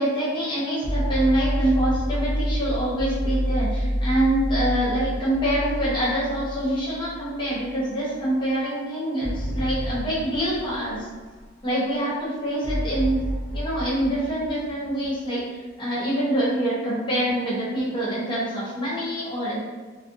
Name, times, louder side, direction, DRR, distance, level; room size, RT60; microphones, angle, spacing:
voice 1, 0.0-11.1 11.6-13.2 13.5-19.6, right 1 dB, 25° left, -8 dB, 0.9 m, -25 dB
sound 1, 0.8-7.2 7.5-7.6 9.2-11.7 12.6-15.4, equal, 85° left, 0.7 m, -28 dB
2.4 x 2.2 x 2.6 m, 1.4 s
head